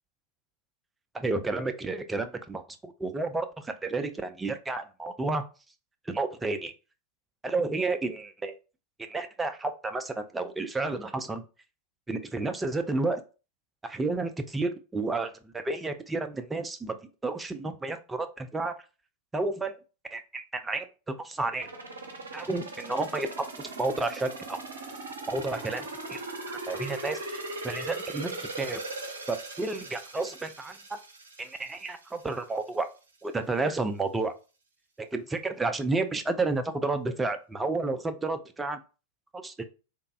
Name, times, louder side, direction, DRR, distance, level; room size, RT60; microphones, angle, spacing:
voice 1, 1.1-5.4 6.1-6.7 7.4-8.5 9.1-11.4 12.1-13.2 13.8-17.0 17.2-18.7 19.3-19.7 20.1-21.7 22.3-24.6 25.3-26.2 26.5-28.8 29.3-30.8 31.4-32.9 33.2-34.3 35.1-38.8 39.4-39.6, right 3 dB, 10° right, 7 dB, 0.3 m, -31 dB
sound 1, 21.6-32.3 32.7-32.8, right 2 dB, 70° right, 0.6 m, -39 dB
3.3 x 2.0 x 2.4 m, 0.33 s
figure-of-eight pair, 90°, 0 cm